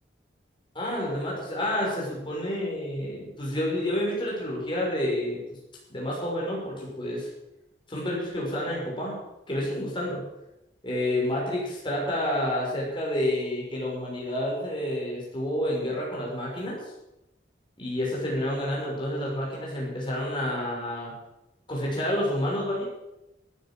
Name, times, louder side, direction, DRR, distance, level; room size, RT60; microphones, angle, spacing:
voice 1, 0.7-5.4 5.9-7.3 7.9-9.2 9.5-10.2 10.8-16.8 17.8-21.1 21.7-22.8, left 1 dB, 25° left, -4 dB, 6.5 m, -29 dB
15.0 x 9.6 x 7.8 m, 0.91 s
head